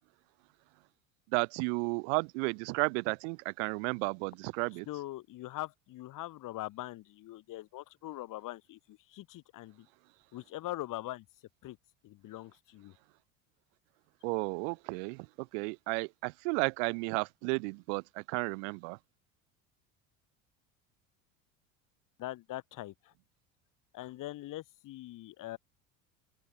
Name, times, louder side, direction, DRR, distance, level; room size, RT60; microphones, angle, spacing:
voice 1, 1.3-4.9 14.2-19.0, right 34 dB, 65° right, 0.8 m, -33 dB
voice 2, 4.9-9.9 10.3-11.3 11.6-11.8 12.0-13.0 22.2-23.1 23.9-25.6, left 16 dB, 55° left, 3.5 m, -42 dB
open air
hypercardioid pair, 75°, 39 cm